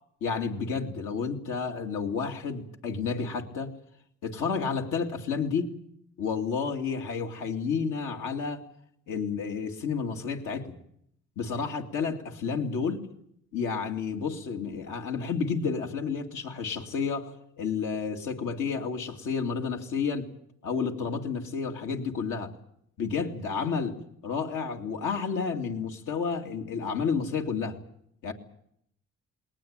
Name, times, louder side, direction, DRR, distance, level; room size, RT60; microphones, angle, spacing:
voice 1, 0.2-3.7 4.2-5.7 6.2-8.7 9.1-10.7 11.4-13.1 13.5-20.3 20.6-22.5 23.0-24.0 24.2-27.8 28.2-28.3, left 5 dB, 85° left, 3 dB, 2.6 m, -31 dB
20.5 x 19.0 x 9.0 m, 0.71 s
cardioid pair, 90°, 30 cm